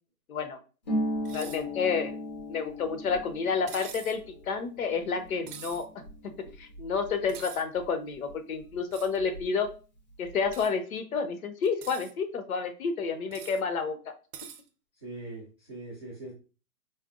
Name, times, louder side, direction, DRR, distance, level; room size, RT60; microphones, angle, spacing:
voice 1, 0.3-0.6 1.3-2.1 2.5-4.2 4.5-5.9 6.2-9.7 10.2-14.0, left 5 dB, 70° left, 9 dB, 0.7 m, -30 dB
Harp, 0.8-8.3 8.6-9.7 10.0-10.6, equal, 30° left, 0.5 m, -38 dB
sound 1, 1.2-1.6 3.7-4.2 5.5-5.8 7.3-7.6 8.9-9.2 10.5-10.7 11.6-12.1 13.3-13.6 14.3-14.6, right 8 dB, 90° right, 0.6 m, -44 dB
voice 2, 15.0-16.3, right 2 dB, 20° right, -7 dB, 0.4 m, -41 dB
4.0 x 2.1 x 2.4 m, 0.34 s
hypercardioid pair, 160°, 45 cm